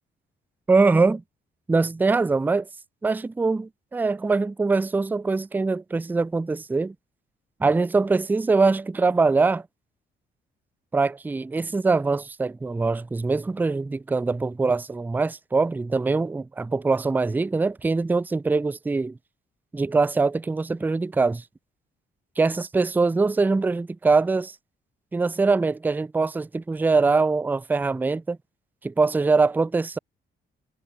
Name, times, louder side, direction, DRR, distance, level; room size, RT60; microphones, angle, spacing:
voice 1, 0.7-1.2 1.7-2.7 3.0-6.9 7.6-9.6 10.9-19.2 19.7-21.4 22.4-24.5 25.1-28.4 28.8-30.0, right 3 dB, 10° right, 0.3 m, -23 dB
cardioid pair, 90°, 20 cm